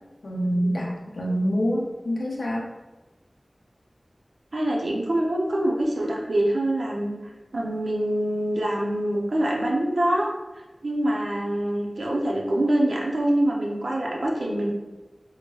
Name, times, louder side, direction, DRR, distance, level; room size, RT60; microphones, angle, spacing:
voice 1, 0.2-2.7, equal, 90° left, -2 dB, 0.5 m, -26 dB
voice 2, 4.5-7.2 7.5-10.3 10.8-14.7, right 1 dB, 85° right, -2 dB, 0.6 m, -25 dB
4.5 x 2.1 x 2.9 m, 1.1 s
wide cardioid pair, 50°, 0 cm